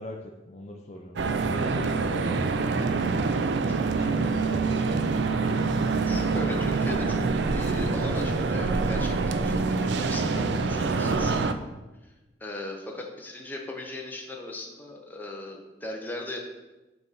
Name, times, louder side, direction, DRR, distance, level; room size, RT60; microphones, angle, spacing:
voice 1, 0.0-3.1 3.7-5.5, left 1 dB, 40° left, 1 dB, 0.4 m, -42 dB
sound 1, 1.2-11.5, right 4 dB, 85° right, 0.4 m, -26 dB
voice 2, 6.1-7.3 7.5-11.5 12.0-12.1 12.4-16.4, left 2 dB, 10° left, 0 dB, 0.7 m, -38 dB
7.8 x 2.6 x 5.6 m, 1.1 s
head